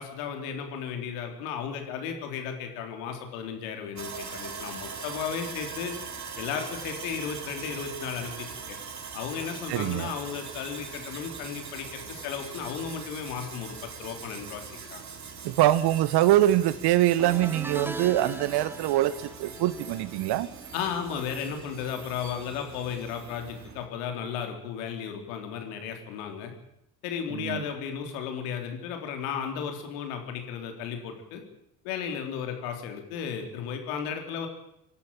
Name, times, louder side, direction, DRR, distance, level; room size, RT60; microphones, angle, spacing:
voice 1, 0.0-5.9 6.4-8.8 9.1-15.0 15.5-15.6 20.7-26.5 27.0-31.4 31.8-34.5, left 7 dB, 65° left, 5 dB, 3.9 m, -34 dB
Sawing, 4.0-23.9, right 6 dB, 35° right, 3.3 m, -42 dB
voice 2, 9.7-10.1 15.4-20.5 27.3-27.6, right 14 dB, 55° right, 17 dB, 1.4 m, -24 dB
sound 1, 17.2-22.6 22.8-23.2 24.5-24.6, right 2 dB, 5° right, 1.3 m, -41 dB
26.0 x 11.5 x 8.9 m, 0.82 s
figure-of-eight pair, 60°, 48 cm